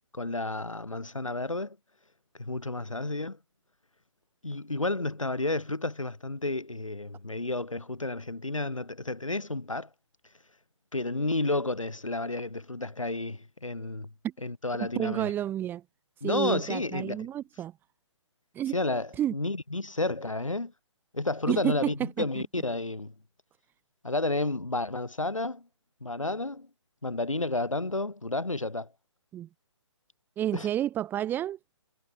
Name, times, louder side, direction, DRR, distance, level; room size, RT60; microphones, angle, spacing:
voice 1, 0.1-1.8 2.4-3.4 4.4-9.9 10.9-14.1 14.4-15.3 16.2-17.3 18.7-20.7 21.1-23.1 24.0-25.7 26.0-26.7 27.0-28.9 30.5-30.7, left 2 dB, 85° left, 3.6 m, -31 dB
voice 2, 14.9-15.8 16.2-17.7 18.5-18.8 19.2-19.3 21.5-21.8 22.2-22.3 29.3-29.5 30.4-31.6, right 11 dB, 10° right, 1.5 m, -30 dB
figure-of-eight pair, 140°, 16 cm